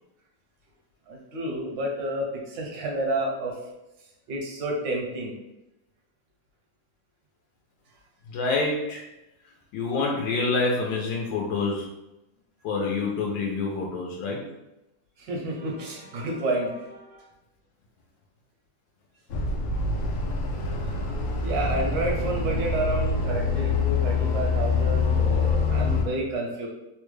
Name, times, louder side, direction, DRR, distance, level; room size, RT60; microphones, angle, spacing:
voice 1, 1.1-3.5 4.3-5.3 15.2-17.2 21.4-26.7, right 1 dB, 80° right, -1 dB, 1.5 m, -30 dB
voice 2, 8.3-9.0 9.7-11.9 12.6-14.4, left 3 dB, 90° left, -2 dB, 1.3 m, -27 dB
sound 1, 19.3-26.0, left 4 dB, 70° left, 1.0 m, -25 dB
3.6 x 2.2 x 3.1 m, 0.93 s
omnidirectional pair, 2.0 m